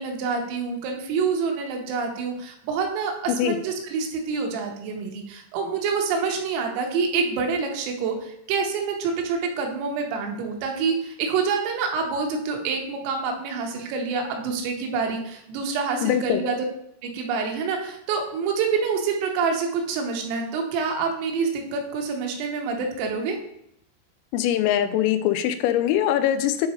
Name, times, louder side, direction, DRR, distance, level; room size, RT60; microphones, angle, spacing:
voice 1, 0.0-16.6 17.0-23.4, right 5 dB, 85° right, 2 dB, 3.7 m, -27 dB
voice 2, 16.0-16.4 24.3-26.7, left 11 dB, 90° left, 9 dB, 3.3 m, -22 dB
8.9 x 3.8 x 4.3 m, 0.76 s
omnidirectional pair, 5.8 m